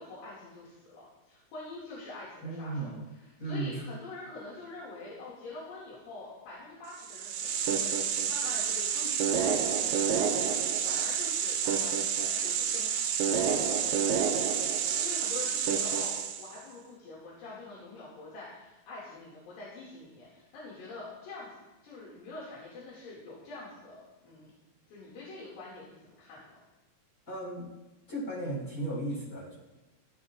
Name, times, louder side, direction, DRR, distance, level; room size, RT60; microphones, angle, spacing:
voice 1, 0.0-24.5 24.9-26.6, left 2 dB, 90° left, -6 dB, 4.5 m, -46 dB
voice 2, 2.4-3.0 3.4-3.8 27.3-27.7 28.1-29.6, right 2 dB, 25° left, -3 dB, 4.1 m, -35 dB
sound 1, 7.0-16.6, right 7 dB, 85° right, 2.0 m, -29 dB
15.0 x 13.0 x 2.5 m, 1.0 s
omnidirectional pair, 4.7 m